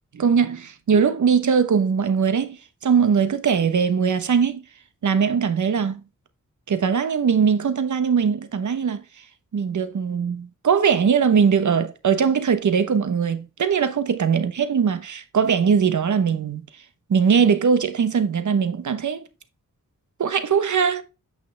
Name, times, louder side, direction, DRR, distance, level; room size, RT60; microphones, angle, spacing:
voice 1, 0.1-2.6 2.8-4.6 5.0-6.0 6.7-9.0 9.5-16.6 17.1-19.2 20.2-21.0, right 6 dB, 70° right, 1.1 m, -20 dB
9.0 x 5.5 x 3.3 m
wide cardioid pair, 95°, 31 cm